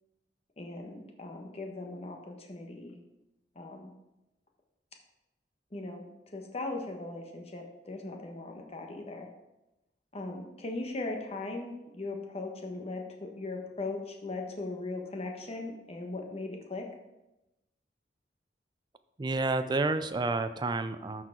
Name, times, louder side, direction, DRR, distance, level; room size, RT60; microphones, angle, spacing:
voice 1, 0.6-3.0 3.5-3.9 5.7-9.3 10.1-16.9, left 2 dB, 35° left, 2 dB, 1.2 m, -39 dB
voice 2, 19.2-21.2, right 3 dB, 25° right, 10 dB, 0.4 m, -30 dB
13.0 x 4.7 x 3.9 m, 0.97 s
head